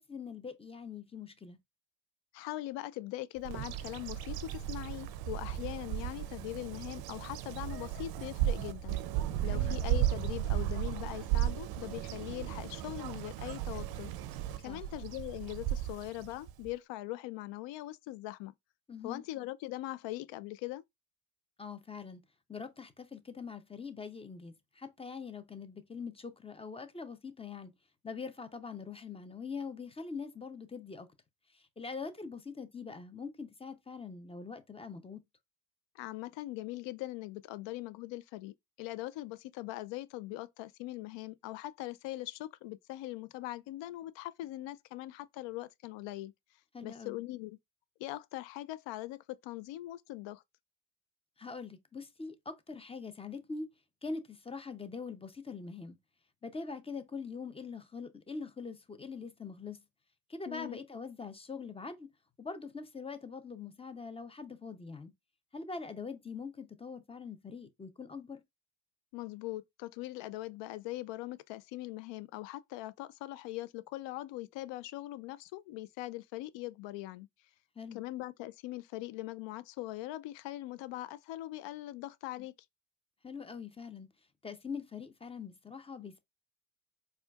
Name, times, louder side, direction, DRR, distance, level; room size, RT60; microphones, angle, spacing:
voice 1, 0.0-1.6 9.3-9.8 14.6-14.9 18.9-19.2 21.6-22.2 22.5-27.7 28.0-31.1 31.5-35.2 46.7-47.2 51.4-53.7 54.0-56.0 56.4-59.8 60.3-62.1 62.4-65.1 65.5-68.4 77.8-78.0 83.2-84.1 84.4-86.2, left 5 dB, 15° left, 0.5 m, -43 dB
voice 2, 2.3-9.0 9.4-14.1 14.6-18.5 19.0-20.8 36.0-46.3 46.8-47.6 48.0-50.4 60.5-60.8 69.1-77.3 77.9-82.5, left 16 dB, 75° left, 0.5 m, -41 dB
Bird vocalization bird call bird song, 3.4-16.7, right 12 dB, 55° right, 0.5 m, -35 dB
4.3 x 2.4 x 2.3 m
cardioid pair, 95°, 45 cm